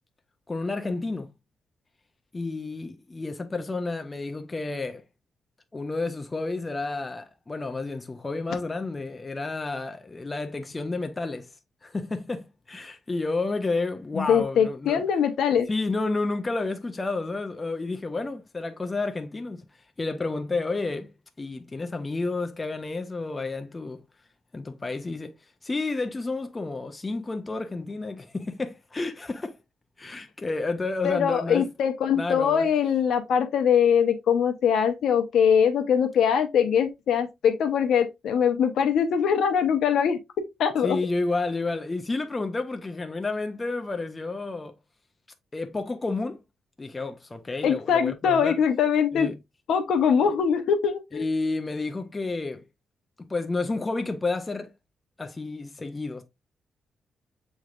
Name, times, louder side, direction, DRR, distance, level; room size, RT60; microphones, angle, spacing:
voice 1, 0.5-1.3 2.3-5.0 5.7-11.5 11.8-15.0 15.7-19.6 20.0-21.1 21.4-24.0 24.5-25.3 25.6-29.6 30.0-31.7 32.1-32.7 40.8-44.7 45.5-46.4 46.8-48.6 49.1-49.4 51.1-52.6 53.2-54.7 55.2-56.2, left 3 dB, 15° left, 0.4 m, -30 dB
voice 2, 14.1-15.7 31.0-40.2 40.6-41.0 47.6-49.3 49.7-51.2, left 7 dB, 75° left, 0.8 m, -22 dB
7.1 x 3.2 x 2.4 m
wide cardioid pair, 170°, 0 cm